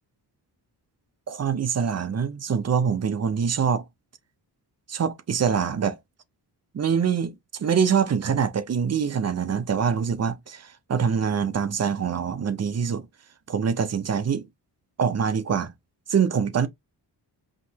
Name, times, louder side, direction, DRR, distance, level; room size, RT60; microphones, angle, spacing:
voice 1, 1.3-3.8 4.9-6.0 6.7-13.1 13.5-14.5 15.0-15.7 16.1-16.7, right 7 dB, 40° right, 0.7 m, -24 dB
5.0 x 3.0 x 2.8 m
cardioid pair, 90°, 42 cm